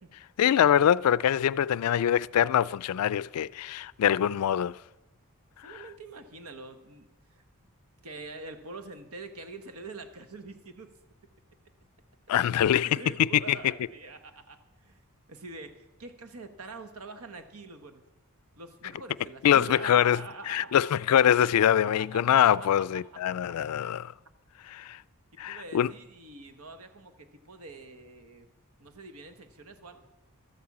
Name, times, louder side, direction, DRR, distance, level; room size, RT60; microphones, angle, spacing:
voice 1, 0.4-4.8 12.3-13.3 19.4-20.2 20.5-24.1 24.7-25.0 25.4-25.9, left 10 dB, 85° left, 0.3 m, -24 dB
voice 2, 5.6-7.4 8.0-10.9 12.8-15.0 15.3-18.0 18.6-20.8 22.0-22.5 25.4-28.5 28.8-30.0, right 3 dB, 80° right, 1.2 m, -44 dB
13.5 x 8.7 x 7.2 m
head